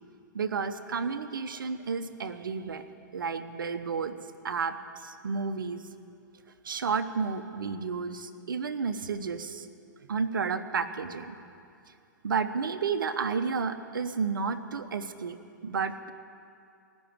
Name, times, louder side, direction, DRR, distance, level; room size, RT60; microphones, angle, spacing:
voice 1, 0.3-2.8 3.1-4.1 4.4-5.8 6.6-9.7 10.0-11.3 12.2-15.4 15.6-16.1, right 5 dB, 80° right, 9 dB, 0.9 m, -31 dB
17.0 x 6.2 x 8.6 m, 2.5 s
hypercardioid pair, 120°, 11 cm